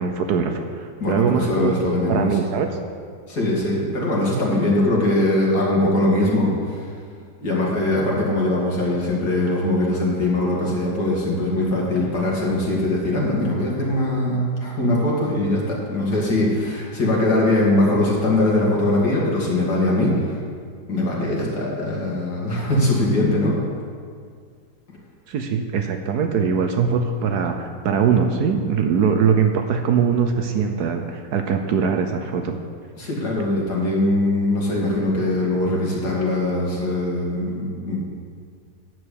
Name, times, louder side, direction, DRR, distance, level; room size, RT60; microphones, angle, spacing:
voice 1, 0.0-1.7 2.1-2.7 25.3-32.6, right 6 dB, 65° right, 5 dB, 1.1 m, -21 dB
voice 2, 1.0-2.4 3.3-6.9 7.4-20.3 20.9-23.5 33.0-38.0, left 1 dB, 60° left, -4 dB, 2.7 m, -21 dB
12.5 x 4.7 x 8.5 m, 2.1 s
omnidirectional pair, 2.0 m